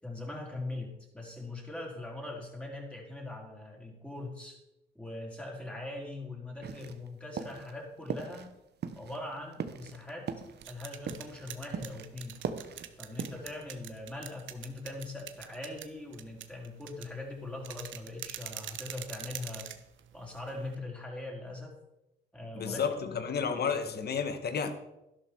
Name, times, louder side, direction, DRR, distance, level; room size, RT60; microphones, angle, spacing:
voice 1, 0.0-4.6 4.9-8.5 8.9-10.3 10.7-12.4 13.0-19.7 20.1-21.7 22.3-22.8 23.1-24.0, left 2 dB, 5° left, -1 dB, 4.4 m, -41 dB
sound 1, 6.6-7.1 7.4-7.7 8.1-8.5 8.8-12.1 12.3-13.6, right 6 dB, 55° right, 1.2 m, -39 dB
sound 2, 10.4-20.8, right 11 dB, 75° right, 1.1 m, -45 dB
voice 2, 22.6-24.7, left 6 dB, 55° left, 8 dB, 1.8 m, -31 dB
12.0 x 11.5 x 4.7 m, 0.92 s
cardioid pair, 90°, 20 cm